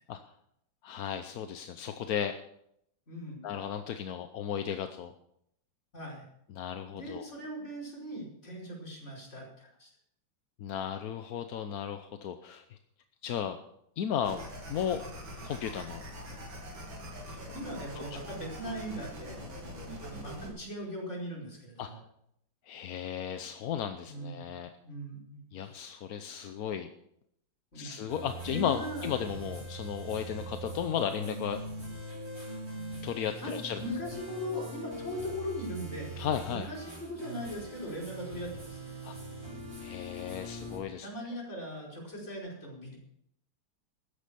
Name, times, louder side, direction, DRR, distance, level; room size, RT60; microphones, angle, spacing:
voice 1, 0.8-2.4 3.4-5.1 6.5-7.3 10.6-12.6 13.2-13.6 14.0-14.4 14.7-15.0 15.3-16.0 18.0-18.1 21.8-21.9 22.7-24.7 25.5-26.9 27.7-31.6 33.0-33.8 36.2-36.7 39.0-39.2 39.8-41.1, left 8 dB, 60° left, 7 dB, 1.1 m, -35 dB
voice 2, 3.1-3.4 5.9-6.3 6.9-9.9 17.3-19.4 20.0-22.0 24.1-24.4 24.8-26.0 27.7-27.9 28.5-29.1 33.4-36.1 36.5-38.9 41.0-43.0, equal, 35° left, -3 dB, 5.5 m, -40 dB
sound 1, 14.2-20.5, equal, 85° right, 3.7 m, -43 dB
sound 2, 28.1-40.8, right 1 dB, 30° right, 4.4 m, -42 dB
13.5 x 10.0 x 6.9 m, 0.74 s
omnidirectional pair, 2.1 m